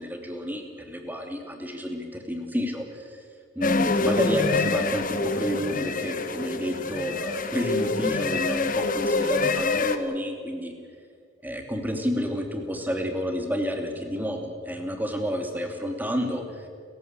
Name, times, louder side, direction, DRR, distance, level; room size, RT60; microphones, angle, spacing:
voice 1, 0.0-3.2 3.5-10.7 11.4-16.7, equal, 10° right, 3 dB, 2.8 m, -30 dB
sound 1, 3.6-10.0, left 3 dB, 45° left, 1.3 m, -26 dB
30.0 x 15.0 x 8.3 m, 2.2 s
head